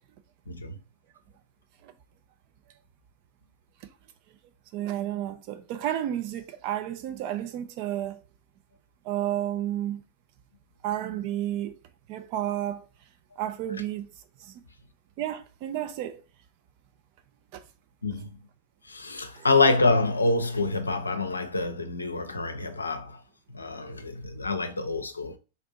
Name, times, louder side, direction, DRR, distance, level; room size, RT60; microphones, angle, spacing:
voice 1, 0.5-0.8 18.0-18.3 18.8-23.2 23.5-25.4, left 3 dB, 80° left, 0.5 m, -26 dB
voice 2, 4.7-8.2 9.0-10.0 10.8-11.7 12.1-12.8 13.4-14.1 14.4-14.5 15.2-16.2 17.5-17.6 19.4-19.5, right 12 dB, 45° right, 0.5 m, -31 dB
3.3 x 2.6 x 4.0 m
figure-of-eight pair, 90°, 0 cm